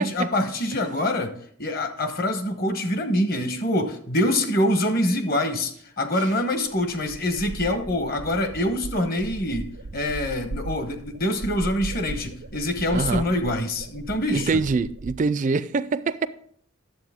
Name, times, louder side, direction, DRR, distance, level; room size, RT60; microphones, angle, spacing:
voice 1, 0.0-1.3 1.6-9.7 9.9-14.6, left 1 dB, 45° left, 1.0 m, -25 dB
sound 1, 6.3-6.4 6.7-15.2, right 2 dB, 90° right, 0.7 m, -37 dB
voice 2, 12.9-13.2 14.3-16.3, right 4 dB, 35° right, 0.3 m, -24 dB
10.5 x 7.5 x 3.6 m
head